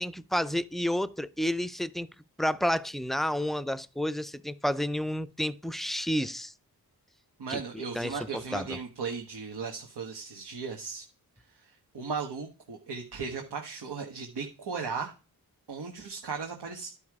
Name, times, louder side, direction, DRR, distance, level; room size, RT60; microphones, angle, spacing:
voice 1, 0.0-2.1 2.4-6.5 7.5-8.8, equal, ahead, 0.4 m, -30 dB
voice 2, 7.4-11.0 11.6-15.1 15.7-16.9, right 5 dB, 90° right, 1.6 m, -36 dB
12.0 x 5.3 x 4.8 m
wide cardioid pair, 110°, 39 cm